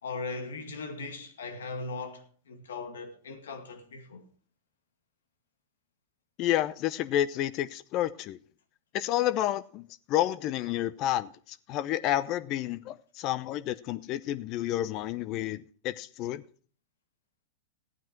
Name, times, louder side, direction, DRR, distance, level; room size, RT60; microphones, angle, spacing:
voice 1, 0.0-4.2, left 3 dB, 85° left, 2.1 m, -39 dB
voice 2, 6.4-8.4 8.9-16.4, left 13 dB, 45° left, 0.7 m, -30 dB
15.0 x 9.2 x 4.6 m
hypercardioid pair, 115°, 0 cm